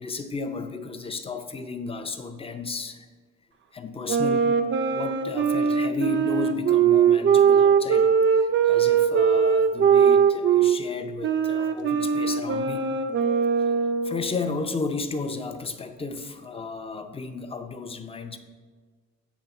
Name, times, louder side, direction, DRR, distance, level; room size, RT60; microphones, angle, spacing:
voice 1, 0.0-3.1 3.7-4.6 4.9-13.0 13.6-13.8 14.0-18.4, left 4 dB, 20° left, 7 dB, 0.6 m, -33 dB
sound 1, 4.1-10.8 11.2-14.2, right 7 dB, 40° right, 0.5 m, -21 dB
8.4 x 3.4 x 5.6 m, 1.5 s
cardioid pair, 90°, 30 cm